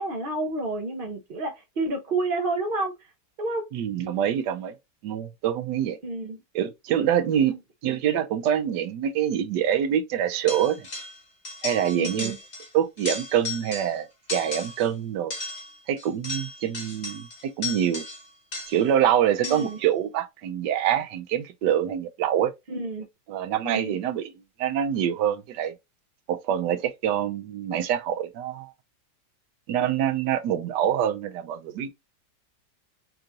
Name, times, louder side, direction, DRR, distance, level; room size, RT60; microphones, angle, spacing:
voice 1, 0.0-2.9 3.4-3.6 6.0-6.4 11.9-12.4 19.4-19.8 22.7-23.1 23.6-24.0, right 2 dB, 45° right, 0.7 m, -29 dB
voice 2, 3.7-4.7 5.0-6.0 6.5-7.6 7.8-10.9 11.6-12.3 12.7-15.3 15.9-18.0 18.7-22.5 23.3-24.3 24.6-25.7 26.3-28.7 29.7-31.9, right 10 dB, 80° right, 1.3 m, -25 dB
sound 1, 10.5-11.2 11.4-12.7 13.0-14.0 14.3-14.9 15.3-18.9 19.4-19.8, left 3 dB, 40° left, 1.6 m, -35 dB
5.6 x 2.5 x 2.7 m
omnidirectional pair, 1.9 m